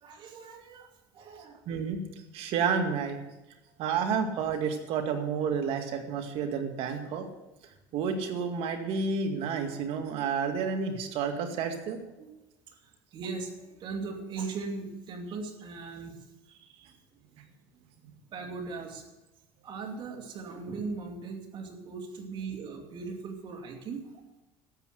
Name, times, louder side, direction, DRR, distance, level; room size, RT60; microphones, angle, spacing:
voice 1, 0.0-1.6 12.2-12.3 12.7-12.8 13.1-16.2 18.3-19.0 19.6-24.0, right 4 dB, 45° right, 4 dB, 2.6 m, -39 dB
voice 2, 1.7-2.0 2.3-3.2 3.8-7.3 7.9-12.0 16.8-16.9, right 6 dB, 65° right, 5 dB, 2.2 m, -30 dB
12.5 x 8.2 x 7.9 m, 0.99 s
cardioid pair, 115°, 11 cm